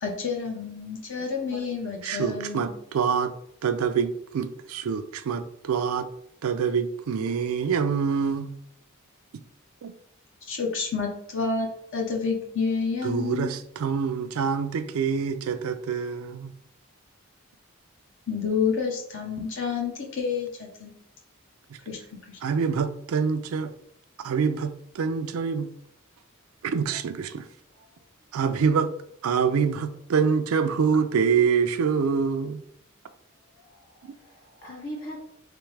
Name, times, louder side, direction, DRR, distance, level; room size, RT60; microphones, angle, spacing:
voice 1, 0.0-2.7 10.5-13.5 18.3-20.9 21.9-22.0 22.3-22.4, left 5 dB, 60° left, 0.8 m, -29 dB
voice 2, 1.5-3.3 3.6-6.1 6.4-8.5 9.8-9.9 13.0-16.5 22.4-23.7 24.2-25.7 26.6-27.5 28.3-28.9 29.2-32.6 34.0-34.1, right 6 dB, 70° right, 0.4 m, -26 dB
voice 3, 33.9-35.4, equal, 40° left, 1.6 m, -42 dB
3.4 x 3.4 x 3.2 m
head